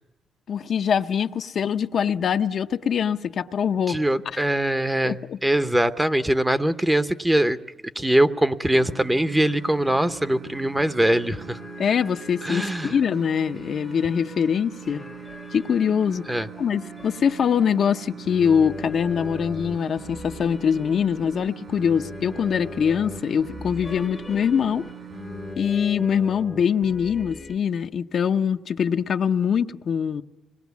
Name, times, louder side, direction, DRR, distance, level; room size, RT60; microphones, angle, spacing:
voice 1, 0.5-4.0 4.3-4.4 5.0-5.4 11.8-15.0 15.5-24.9 25.6-30.2, left 7 dB, 55° left, 0.7 m, -23 dB
voice 2, 3.9-7.6 8.0-11.6 12.4-12.9 16.3-16.5, right 1 dB, 10° right, 0.9 m, -22 dB
sound 1, 8.7-25.6, right 8 dB, 50° right, 1.3 m, -42 dB
sound 2, 11.1-27.6, left 2 dB, 25° left, 0.9 m, -41 dB
25.5 x 20.0 x 8.3 m
cardioid pair, 90°, 0 cm